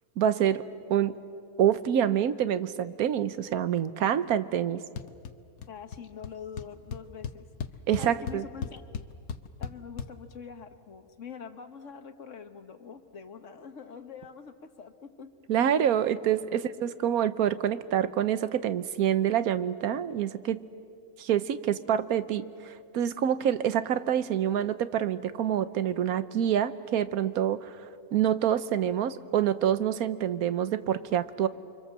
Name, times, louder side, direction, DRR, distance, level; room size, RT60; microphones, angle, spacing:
voice 1, 0.2-0.6 0.9-1.1 1.6-4.8 7.9-8.4 15.5-20.7 21.2-22.5 22.9-27.8 28.1-31.5, right 9 dB, 90° right, 14 dB, 1.3 m, -26 dB
sound 1, 5.0-5.3 5.6-6.0 6.2-6.3 6.6-10.1, left 6 dB, 75° left, 1.4 m, -36 dB
voice 2, 5.7-7.5 8.0-8.8 9.6-15.3, left 6 dB, 60° left, 8 dB, 1.6 m, -44 dB
29.5 x 24.5 x 7.5 m, 2.3 s
omnidirectional pair, 1.5 m